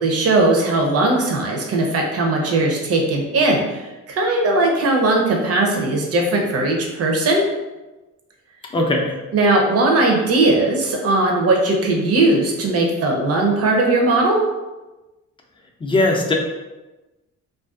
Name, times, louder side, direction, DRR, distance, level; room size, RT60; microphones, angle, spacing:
voice 1, 0.0-7.4 9.3-14.4, right 2 dB, 50° right, 1 dB, 0.6 m, -18 dB
voice 2, 8.7-9.2 15.8-16.3, left 2 dB, 15° left, 0 dB, 0.5 m, -19 dB
2.5 x 2.2 x 2.3 m, 1.1 s
cardioid pair, 90°, 30 cm